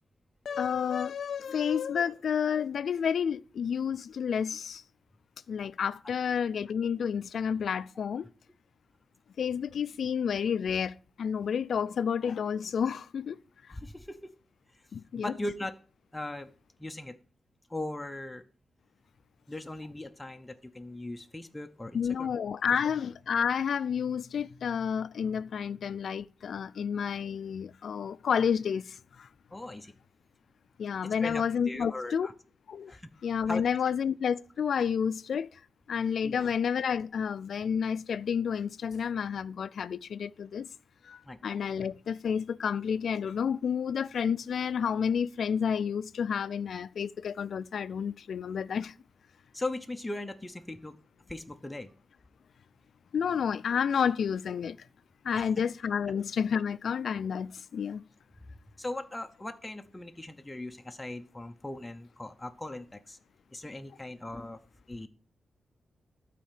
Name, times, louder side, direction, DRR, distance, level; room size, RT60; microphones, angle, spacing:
voice 1, 0.5-4.8 5.5-8.3 9.4-13.4 14.9-15.3 21.9-29.3 30.8-32.3 32.7-32.9 33.2-35.6 35.9-40.7 41.0-48.9 53.1-54.8 55.2-58.0, left 7 dB, 65° left, 0.4 m, -30 dB
voice 2, 13.7-14.3 14.7-14.8 15.2-15.8 16.1-16.5 16.8-17.2 17.7-18.5 19.5-22.3 29.5-29.9 31.2-32.3 32.9-33.1 33.5-33.6 36.2-36.4 41.3-41.4 49.5-50.9 51.3-51.9 55.3-55.5 58.8-63.2 63.5-64.6 64.9-65.1, left 2 dB, 10° left, 0.6 m, -39 dB
12.0 x 4.2 x 7.4 m
wide cardioid pair, 135°, 0 cm